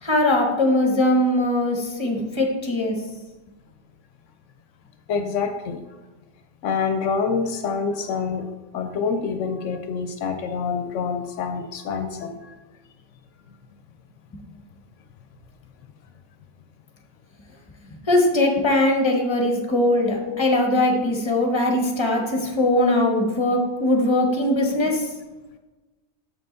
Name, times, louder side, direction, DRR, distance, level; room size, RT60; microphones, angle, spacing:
voice 1, 0.0-3.0 18.1-25.0, left 1 dB, 25° left, 1 dB, 1.1 m, -21 dB
voice 2, 5.1-5.8 6.6-8.5 8.7-12.5 20.2-20.5, left 5 dB, 75° left, 7 dB, 0.9 m, -26 dB
7.6 x 5.5 x 3.9 m, 1.2 s
omnidirectional pair, 1.3 m